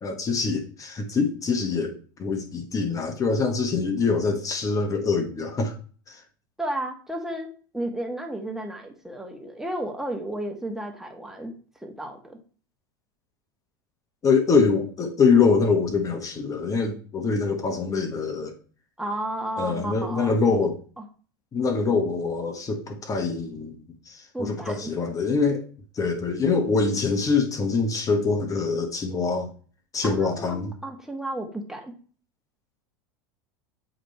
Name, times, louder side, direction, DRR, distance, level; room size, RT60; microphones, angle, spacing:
voice 1, 0.0-5.7 6.1-6.2 14.2-18.5 19.6-20.8 21.5-23.8 24.1-25.7 25.9-29.5 29.9-30.7, left 4 dB, 30° left, 6 dB, 1.1 m, -24 dB
voice 2, 6.6-7.5 7.7-11.5 11.8-12.4 19.0-20.3 21.0-21.1 24.3-24.9 30.0-31.9, right 1 dB, 5° right, 3 dB, 1.4 m, -33 dB
7.8 x 3.1 x 4.3 m, 0.41 s
hypercardioid pair, 100°, 11 cm